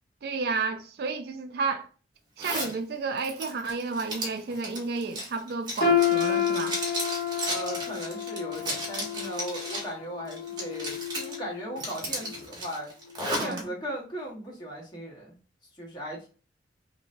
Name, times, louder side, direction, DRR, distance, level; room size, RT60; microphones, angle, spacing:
voice 1, 0.2-1.9 2.4-6.8 13.3-13.6, right 4 dB, 55° right, 0.3 m, -31 dB
Zipper (clothing), 2.4-2.7 3.2-9.9 10.3-11.4 11.8-13.6, right 1 dB, 25° right, 1.0 m, -34 dB
sound 1, 5.8-11.8 12.2-12.4 13.1-13.2, left 7 dB, 50° left, 0.8 m, -29 dB
voice 2, 7.4-12.9 13.4-15.4 15.8-16.3, right 1 dB, 25° left, 1.2 m, -37 dB
3.0 x 2.8 x 2.6 m
head